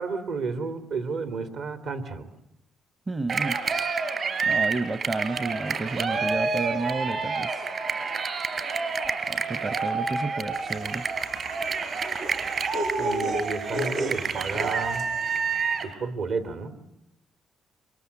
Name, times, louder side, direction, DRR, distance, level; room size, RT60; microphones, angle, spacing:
voice 1, 0.0-2.3 13.0-15.1 15.8-16.7, right 4 dB, 70° right, 9 dB, 3.0 m, -32 dB
voice 2, 3.1-3.6 4.4-7.7 9.3-11.1, right 3 dB, 30° right, 13 dB, 1.0 m, -31 dB
Cheering, 3.3-15.9, right 5 dB, 50° right, 3.5 m, -28 dB
sound 1, 10.7-15.2, equal, 90° right, 2.0 m, -33 dB
27.5 x 23.5 x 8.5 m, 0.83 s
cardioid pair, 90°, 0 cm